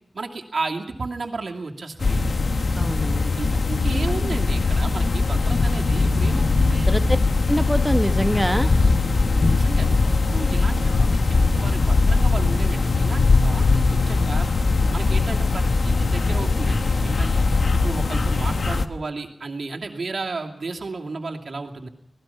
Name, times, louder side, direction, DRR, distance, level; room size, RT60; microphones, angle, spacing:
voice 1, 0.1-2.3 3.4-6.9 8.7-9.1 9.5-14.5 14.9-17.4 17.7-21.9, right 3 dB, 75° right, 1 dB, 2.6 m, -33 dB
sound 1, 2.0-18.9, left 3 dB, 70° left, 1.2 m, -20 dB
voice 2, 2.8-3.3 6.6-7.0 7.5-8.7, equal, 5° right, 9 dB, 1.0 m, -24 dB
26.0 x 18.5 x 5.8 m, 0.79 s
wide cardioid pair, 100°, 0 cm